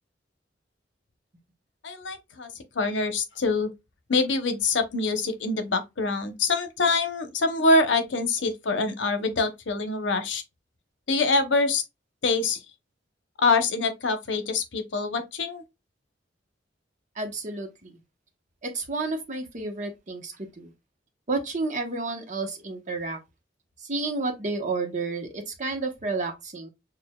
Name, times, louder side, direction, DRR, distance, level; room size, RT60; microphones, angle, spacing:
voice 1, 1.8-2.5 2.7-3.7 4.1-10.4 11.1-11.8 12.2-12.6 13.4-15.6, left 3 dB, 80° left, 0.8 m, -25 dB
voice 2, 17.2-17.9 18.6-20.7 21.3-23.2 23.9-26.7, right 3 dB, 40° right, 1.0 m, -31 dB
6.4 x 2.4 x 2.3 m
head